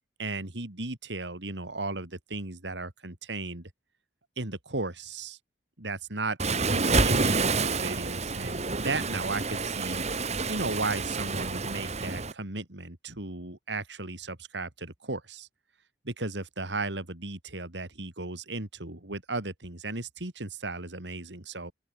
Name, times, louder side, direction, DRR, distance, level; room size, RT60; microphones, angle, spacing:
voice 1, 0.2-3.7 4.4-5.4 5.8-6.4 6.7-10.0 10.5-15.5 16.0-21.7, right 3 dB, 80° right, 3.3 m, -35 dB
Waves surf, 6.4-12.3, right 3 dB, 40° right, 2.2 m, -28 dB
open air
head